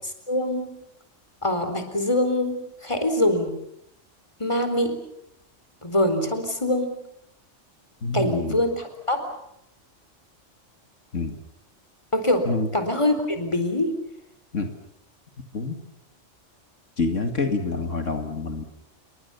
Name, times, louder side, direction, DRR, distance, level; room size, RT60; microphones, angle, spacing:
voice 1, 0.3-0.7 1.4-3.5 4.4-5.0 5.8-6.9 8.1-9.2 12.1-12.5 12.7-13.9, left 1 dB, 25° left, 7 dB, 4.2 m, -24 dB
voice 2, 8.0-8.6 11.1-11.4 12.5-12.7 14.5-14.7 15.5-15.8 17.0-18.6, left 3 dB, 75° left, 5 dB, 2.6 m, -27 dB
29.0 x 23.0 x 7.1 m, 0.77 s
omnidirectional pair, 1.3 m